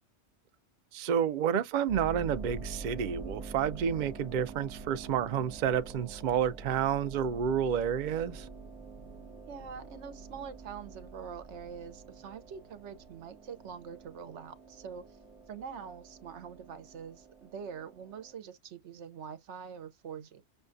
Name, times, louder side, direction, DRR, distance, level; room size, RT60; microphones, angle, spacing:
voice 1, 0.9-8.5, right 8 dB, 60° right, 0.5 m, -30 dB
sound 1, 1.9-18.3, right 3 dB, 5° right, 0.5 m, -46 dB
voice 2, 9.5-15.2 15.5-20.4, right 7 dB, 80° right, 1.0 m, -44 dB
6.1 x 2.2 x 2.5 m
omnidirectional pair, 1.2 m